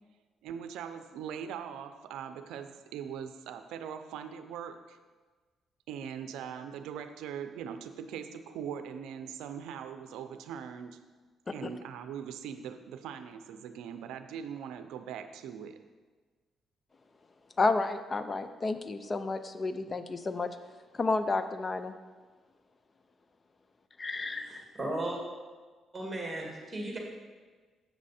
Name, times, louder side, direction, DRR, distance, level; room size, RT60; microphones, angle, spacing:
voice 1, 0.4-5.0 5.9-11.0 11.5-15.8, right 8 dB, 90° right, 9 dB, 0.5 m, -41 dB
voice 2, 17.6-20.5 20.9-21.9 24.0-24.4, left 3 dB, 30° left, 10 dB, 0.5 m, -31 dB
voice 3, 24.2-25.2 25.9-27.0, right 1 dB, 15° right, -1 dB, 2.2 m, -36 dB
8.2 x 6.2 x 4.2 m, 1.4 s
cardioid pair, 90°, 0 cm